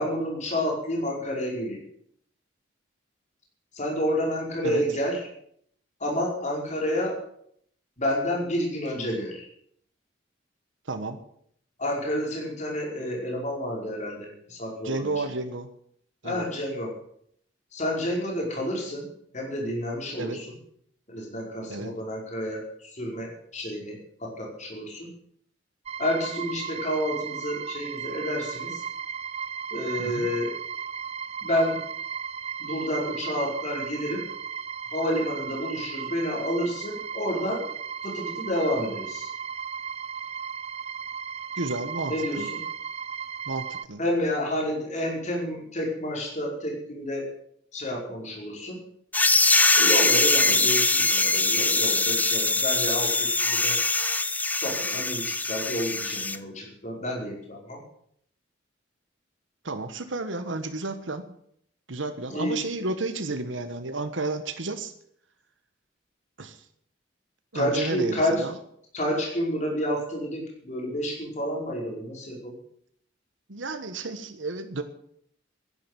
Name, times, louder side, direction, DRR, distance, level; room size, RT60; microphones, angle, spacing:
voice 1, 0.0-1.8 3.7-5.2 6.0-7.2 8.0-9.5 11.8-15.1 16.2-16.9 17.7-19.1 19.3-20.6 21.1-25.1 26.0-28.8 29.7-30.5 31.4-31.8 32.6-34.3 34.9-37.6 38.0-39.3 42.1-42.6 44.0-47.3 47.7-48.8 49.7-53.8 54.6-57.8 62.3-62.6 67.5-68.4 68.9-72.6, equal, 40° left, -1 dB, 5.0 m, -29 dB
voice 2, 10.9-11.2 14.8-15.7 16.2-16.4 20.2-20.4 21.7-21.9 30.0-30.3 41.6-42.5 43.5-44.0 50.4-50.7 59.6-61.2 61.9-64.9 66.4-66.6 67.5-68.5 73.5-74.8, right 3 dB, 90° right, 9 dB, 1.4 m, -32 dB
sound 1, 25.9-43.9, right 7 dB, 35° right, 0.6 m, -35 dB
sound 2, 49.1-56.4, left 3 dB, 10° left, 0.6 m, -22 dB
11.5 x 11.0 x 9.2 m, 0.67 s
head